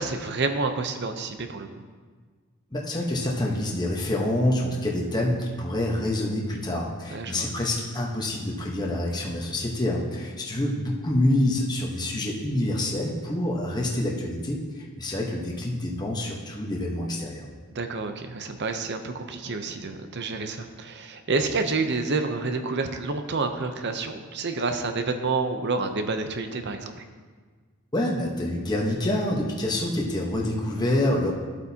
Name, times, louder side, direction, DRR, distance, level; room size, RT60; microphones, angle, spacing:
voice 1, 0.0-1.7 7.1-7.5 17.7-27.0, right 3 dB, 50° right, 7 dB, 0.7 m, -29 dB
voice 2, 2.7-17.4 27.9-31.3, left 1 dB, 20° left, -2 dB, 1.1 m, -27 dB
13.0 x 8.1 x 2.8 m, 1.5 s
head